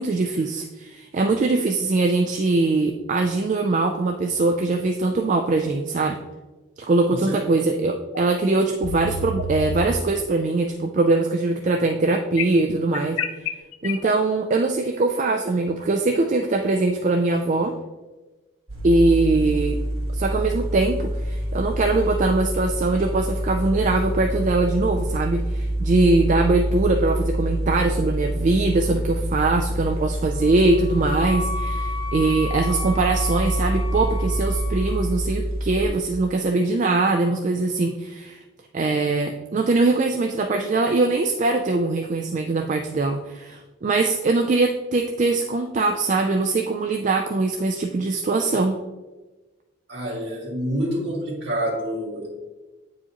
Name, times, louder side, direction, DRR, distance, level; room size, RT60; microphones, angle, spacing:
voice 1, 0.0-6.2 6.8-13.2 13.8-17.7 18.8-19.8 20.1-38.4 38.7-48.7, right 3 dB, 40° right, 4 dB, 0.3 m, -22 dB
sound 1, 8.1-8.2 8.8-9.9 12.4-14.1, left 4 dB, 85° left, 0.5 m, -28 dB
sound 2, 18.7-35.8, right 1 dB, 85° right, 1.3 m, -26 dB
Wind instrument woodwind instrument, 30.4-35.2, left 4 dB, 70° left, 1.1 m, -34 dB
voice 2, 49.9-52.3, equal, 60° right, -5 dB, 2.1 m, -27 dB
8.7 x 4.7 x 2.9 m, 1.2 s
head